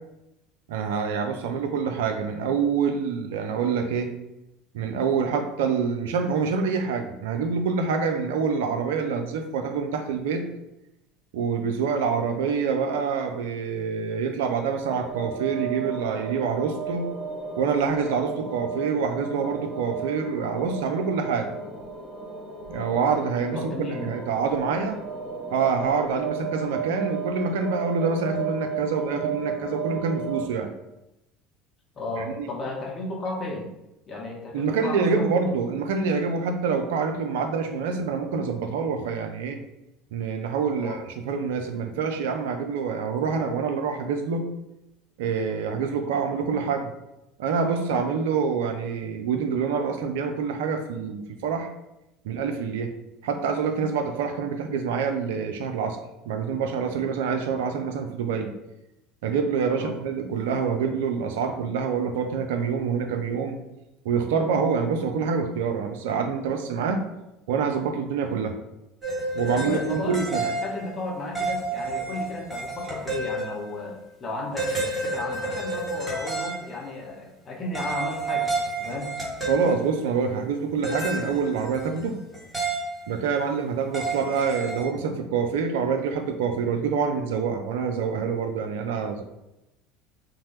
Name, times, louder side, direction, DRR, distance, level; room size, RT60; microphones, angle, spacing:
voice 1, 0.7-4.1 4.7-10.4 11.3-17.1 17.6-21.5 22.7-25.0 25.5-30.7 32.2-32.5 34.5-39.6 40.1-44.5 45.2-46.9 47.4-51.7 52.2-52.9 53.2-56.0 56.3-58.5 59.2-63.6 64.0-67.0 67.5-68.5 69.3-70.4 79.5-82.1 83.1-89.2, right 5 dB, 70° right, 6 dB, 0.3 m, -26 dB
sound 1, 14.8-30.5, right 5 dB, 45° right, 1.3 m, -34 dB
voice 2, 23.5-24.1 32.0-33.7 34.1-35.2 40.7-41.0 59.7-59.9 69.5-70.1 70.4-78.5 78.8-79.1, left 2 dB, 35° left, -1 dB, 0.8 m, -34 dB
sound 2, 69.0-71.0 71.3-73.9 74.6-76.8 77.7-80.2 80.8-82.1 82.3-83.3 83.9-84.8, right 2 dB, 15° right, 1.2 m, -30 dB
2.8 x 2.0 x 3.0 m, 0.91 s
hypercardioid pair, 70°, 0 cm